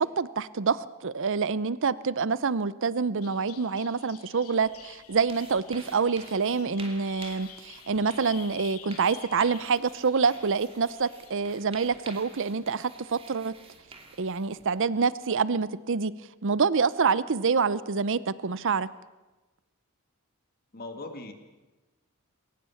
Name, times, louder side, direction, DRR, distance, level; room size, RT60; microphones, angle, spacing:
voice 1, 0.0-13.5 14.2-16.1 16.4-18.9, right 5 dB, 60° right, 18 dB, 0.7 m, -26 dB
Bird vocalization bird call bird song, 3.2-11.6, left 11 dB, 80° left, 1.4 m, -49 dB
sound 1, 4.6-14.9, right 3 dB, 25° right, 2.7 m, -50 dB
voice 2, 20.7-21.3, left 2 dB, 45° left, 6 dB, 2.0 m, -39 dB
21.5 x 19.0 x 7.2 m, 1.1 s
head